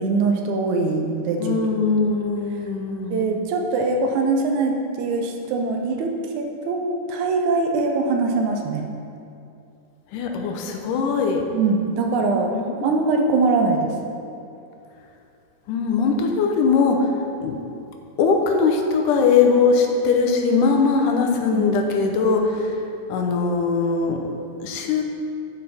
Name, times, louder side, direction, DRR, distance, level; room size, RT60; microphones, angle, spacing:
voice 1, 0.0-1.6 3.1-8.8 11.5-12.5 12.8-13.9 21.1-21.7, right 3 dB, 75° right, 3 dB, 1.9 m, -22 dB
voice 2, 1.4-3.3 10.1-11.5 12.5-13.5 15.7-17.1 17.4-17.6 18.2-24.3 24.6-25.0, left 4 dB, 80° left, 3 dB, 2.3 m, -21 dB
11.0 x 5.4 x 4.2 m, 2.6 s
omnidirectional pair, 3.7 m